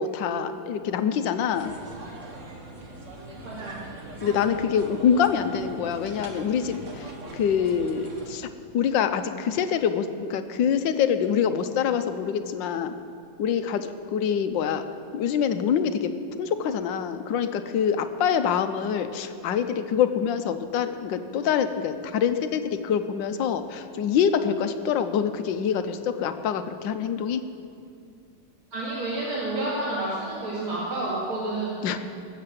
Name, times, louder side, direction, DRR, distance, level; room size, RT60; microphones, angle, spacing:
voice 1, 0.0-1.7 4.2-8.5 8.7-12.9 13.4-14.8 15.1-16.1 16.4-27.5 31.8-32.0, left 7 dB, 70° left, 9 dB, 1.4 m, -25 dB
sound 1, 1.5-8.3, right 2 dB, 40° right, 1.8 m, -41 dB
voice 2, 3.4-3.8 28.7-31.8, right 2 dB, 85° right, -7 dB, 3.3 m, -29 dB
19.0 x 7.8 x 7.7 m, 2.5 s
omnidirectional pair, 2.2 m